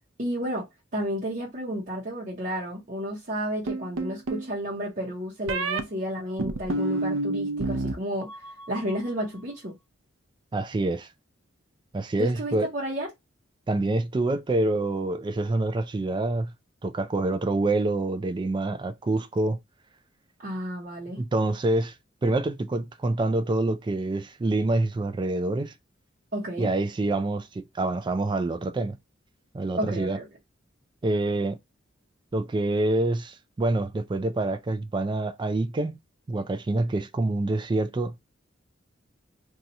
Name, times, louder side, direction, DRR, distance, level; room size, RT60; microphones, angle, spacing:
voice 1, 0.2-0.7 0.9-9.7 12.2-13.1 20.4-21.2 26.3-26.7 29.8-30.3, equal, 45° right, 0.9 m, -32 dB
sound 1, 3.7-4.5 5.5-5.8 6.4-7.9 8.2-8.8, right 2 dB, 80° right, 0.5 m, -29 dB
voice 2, 10.5-11.1 11.9-12.7 13.7-16.5 16.8-19.6 21.2-22.0 22.2-25.7 26.6-29.0 29.5-30.2 31.0-31.6 32.3-36.0 36.3-38.2, right 2 dB, 25° right, 0.3 m, -26 dB
2.7 x 2.4 x 4.0 m
head